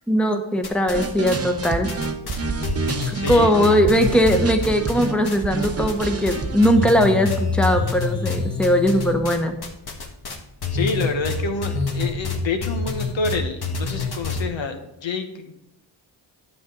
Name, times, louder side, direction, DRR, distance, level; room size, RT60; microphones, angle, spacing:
voice 1, 0.1-1.9 3.1-9.5, equal, ahead, 5 dB, 1.0 m, -19 dB
sound 1, 0.6-1.4 1.6-5.4 5.6-6.4 6.6-14.4, left 4 dB, 55° left, 1.5 m, -27 dB
sound 2, 0.9-6.9, right 3 dB, 30° right, 0.9 m, -28 dB
voice 2, 3.1-3.8 10.7-15.5, left 3 dB, 75° left, 5 dB, 1.2 m, -28 dB
9.4 x 7.4 x 3.8 m, 0.84 s
cardioid pair, 80°, 46 cm